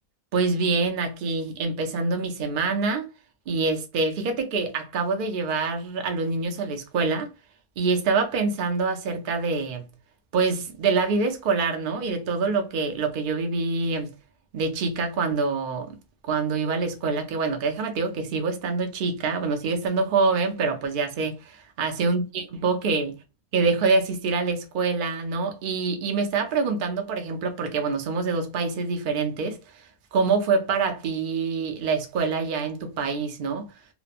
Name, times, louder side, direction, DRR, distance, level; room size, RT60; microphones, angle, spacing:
voice 1, 0.3-3.1 3.5-7.3 7.8-9.9 10.3-14.1 14.5-16.0 16.2-23.1 23.5-33.7, right 4 dB, 60° right, 0.5 m, -25 dB
2.9 x 2.1 x 2.4 m
omnidirectional pair, 1.5 m